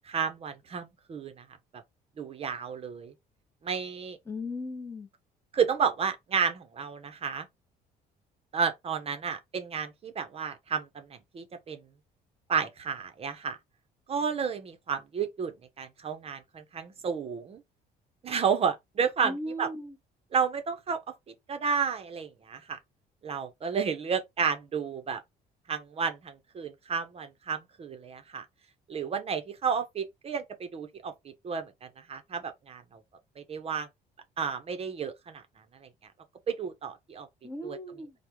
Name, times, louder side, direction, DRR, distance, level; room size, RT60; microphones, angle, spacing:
voice 1, 0.1-1.4 2.2-3.1 3.6-4.2 5.5-7.5 8.5-11.8 12.5-13.6 14.1-17.6 18.2-19.7 20.3-21.0 21.5-22.8 23.2-25.2 25.7-28.5 28.9-31.7 32.1-33.0 33.4-33.9 34.4-35.4 36.5-37.3 37.6-37.8, right 6 dB, 35° right, 0.6 m, -31 dB
voice 2, 4.3-5.1 19.2-19.9 37.4-38.1, left 1 dB, 15° left, 0.7 m, -37 dB
3.4 x 2.0 x 2.9 m
cardioid pair, 110°, 17 cm